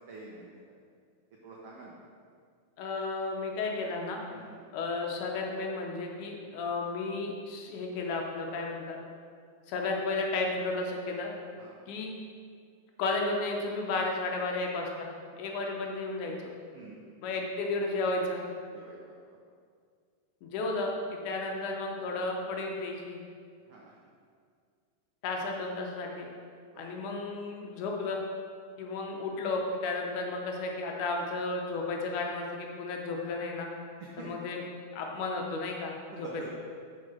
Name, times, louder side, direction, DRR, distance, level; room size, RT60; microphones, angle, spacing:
voice 1, 0.1-0.5 1.4-2.0 4.3-4.6 11.6-11.8 15.4-15.5 16.7-17.2 18.7-19.4 23.7-23.9 26.7-27.0 34.0-34.5 36.1-36.5, right 3 dB, 85° right, -4 dB, 1.2 m, -47 dB
voice 2, 2.8-4.2 4.7-9.0 9.7-11.3 11.9-12.1 13.0-15.1 15.4-16.5 17.2-18.4 20.4-23.2 25.2-26.3 26.8-28.2 28.8-33.7 34.2-34.6 34.9-36.5, left 3 dB, 75° left, 0 dB, 2.2 m, -33 dB
7.0 x 4.8 x 6.2 m, 2.1 s
omnidirectional pair, 3.8 m